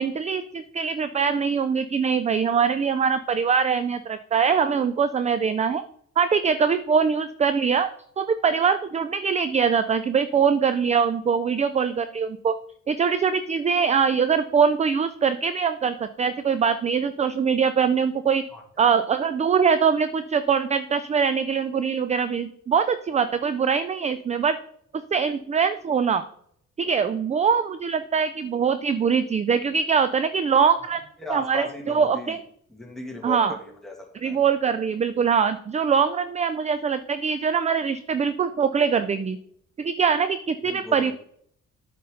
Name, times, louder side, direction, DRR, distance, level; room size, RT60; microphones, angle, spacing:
voice 1, 0.0-5.8 6.2-7.9 8.2-12.6 12.9-18.4 18.8-24.6 25.1-26.2 26.8-31.0 31.3-32.4 33.2-33.6 34.2-39.4 39.8-41.1, right 6 dB, 25° right, 12 dB, 0.4 m, -23 dB
voice 2, 18.5-18.9 31.2-32.4 32.7-34.4 40.7-41.1, left 1 dB, ahead, -1 dB, 2.1 m, -37 dB
8.5 x 5.4 x 3.8 m, 0.67 s
cardioid pair, 90°, 30 cm